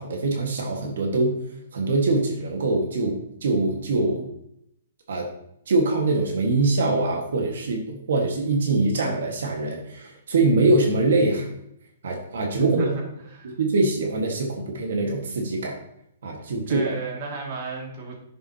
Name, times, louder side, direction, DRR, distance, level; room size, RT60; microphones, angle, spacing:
voice 1, 0.0-1.4 1.7-4.3 5.1-5.3 5.7-11.5 12.0-12.9 13.4-15.8 16.2-16.8, right 2 dB, 70° right, 2 dB, 1.6 m, -23 dB
voice 2, 12.6-13.6 16.7-18.2, right 3 dB, 35° right, 0 dB, 2.2 m, -32 dB
11.0 x 7.2 x 2.9 m, 0.77 s
hypercardioid pair, 175°, 0 cm